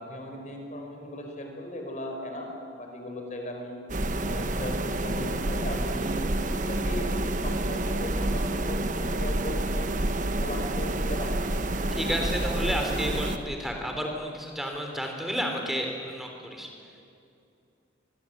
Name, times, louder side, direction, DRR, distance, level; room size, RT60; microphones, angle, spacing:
voice 1, 0.0-3.8 4.2-10.0 10.4-11.4, left 1 dB, 40° left, 2 dB, 5.0 m, -38 dB
sound 1, 3.9-13.4, right 1 dB, 45° right, 1.4 m, -28 dB
voice 2, 12.0-16.7, equal, ahead, 2 dB, 3.5 m, -31 dB
24.5 x 20.0 x 9.1 m, 2.6 s
head